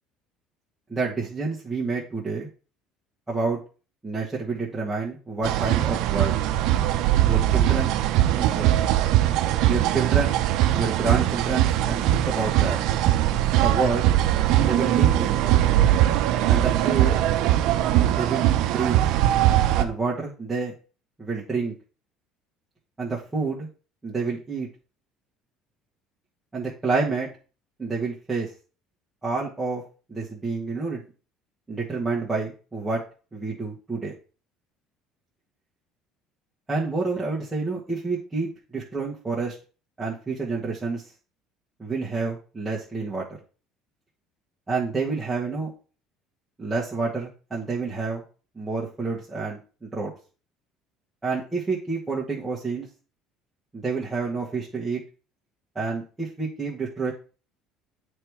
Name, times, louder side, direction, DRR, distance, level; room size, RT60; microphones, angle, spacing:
voice 1, 0.9-2.5 3.3-3.6 4.0-6.4 7.2-8.0 8.4-8.7 9.7-10.4 10.7-12.8 13.5-14.1 14.6-15.4 16.5-17.2 18.1-18.9 19.8-20.7 21.2-21.7 23.0-23.7 24.0-24.7 26.5-27.3 27.8-28.5 29.2-29.8 30.1-31.0 31.7-33.0 33.3-34.1 36.7-39.6 40.0-41.0 41.8-43.3 44.7-45.7 46.6-48.2 48.5-50.1 51.2-52.9 53.7-55.0 55.7-57.1, right 4 dB, 10° right, -6 dB, 1.3 m, -28 dB
sound 1, 5.4-19.8, right 13 dB, 70° right, 0.6 m, -21 dB
8.6 x 3.4 x 4.7 m, 0.37 s
cardioid pair, 145°, 0 cm